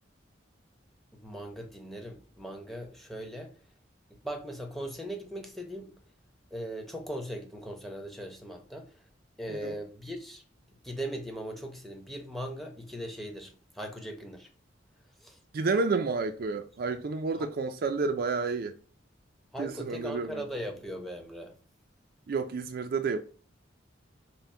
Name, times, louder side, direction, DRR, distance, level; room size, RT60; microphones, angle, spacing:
voice 1, 1.1-3.5 4.2-5.9 6.5-8.9 9.4-10.4 10.8-14.5 15.2-15.4 19.5-21.5, equal, ahead, 0.7 m, -39 dB
voice 2, 15.5-18.8 19.6-20.5 22.3-23.2, right 4 dB, 50° right, 0.4 m, -30 dB
5.8 x 2.1 x 4.3 m
head